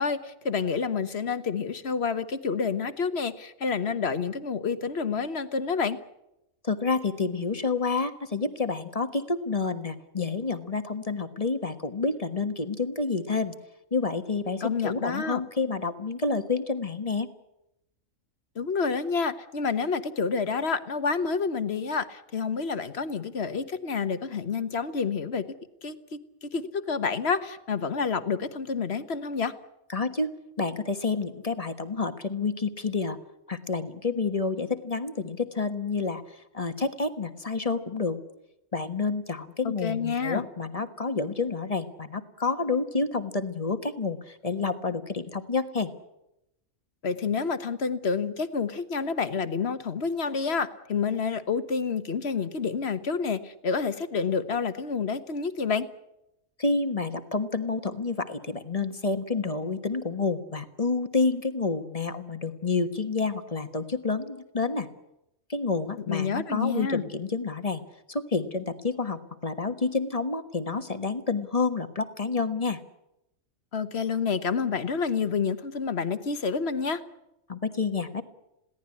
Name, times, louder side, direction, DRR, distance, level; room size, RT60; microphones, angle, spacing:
voice 1, 0.0-6.0 14.6-15.4 18.5-25.4 25.8-29.5 39.6-40.4 47.0-55.9 66.1-67.0 73.7-77.0, left 5 dB, 50° left, 12 dB, 1.4 m, -28 dB
voice 2, 6.6-13.5 13.9-17.3 29.9-33.2 33.5-38.2 38.7-45.9 56.6-64.9 65.5-67.8 68.1-72.8 77.5-78.2, left 4 dB, 25° left, 9 dB, 1.4 m, -29 dB
22.0 x 17.0 x 9.8 m, 0.86 s
omnidirectional pair, 1.4 m